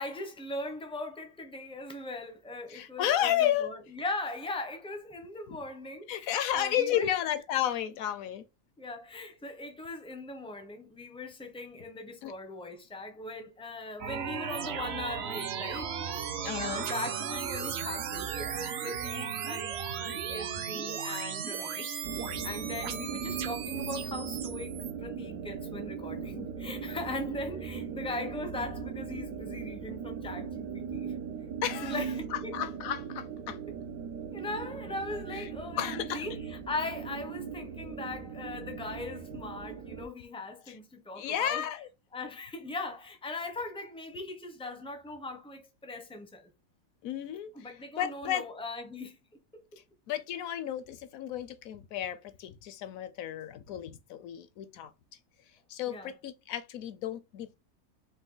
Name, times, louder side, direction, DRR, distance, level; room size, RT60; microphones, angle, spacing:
voice 1, 0.0-7.1 8.8-15.9 16.6-31.1 31.8-32.6 33.7-33.8 34.3-41.7 42.1-46.5 47.5-49.2 49.5-49.6 55.9-56.1, left 2 dB, 5° left, 0.4 m, -39 dB
voice 2, 2.7-3.7 6.1-8.5 12.2-12.3 16.4-16.9 22.9-23.0 31.6-32.0 32.3-33.6 35.3-35.5 35.8-36.3 40.7-40.8 41.2-41.9 47.0-47.7 48.0-48.4 50.1-54.9 55.7-57.6, left 11 dB, 70° left, 0.9 m, -32 dB
sound 1, 14.0-24.9, right 7 dB, 60° right, 0.7 m, -36 dB
sound 2, 22.0-40.1, right 6 dB, 80° right, 1.1 m, -39 dB
4.5 x 2.6 x 3.8 m
omnidirectional pair, 1.6 m